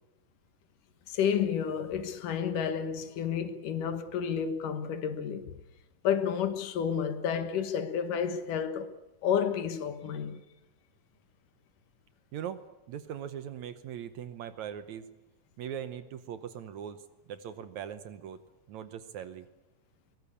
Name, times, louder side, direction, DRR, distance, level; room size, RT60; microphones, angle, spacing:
voice 1, 1.1-5.6 6.0-8.9 9.2-10.4, left 8 dB, 70° left, 2.9 m, -30 dB
voice 2, 12.3-15.1 15.6-17.0 17.3-18.4 18.7-19.5, right 9 dB, 70° right, 2.0 m, -40 dB
23.0 x 20.0 x 8.4 m
omnidirectional pair, 3.9 m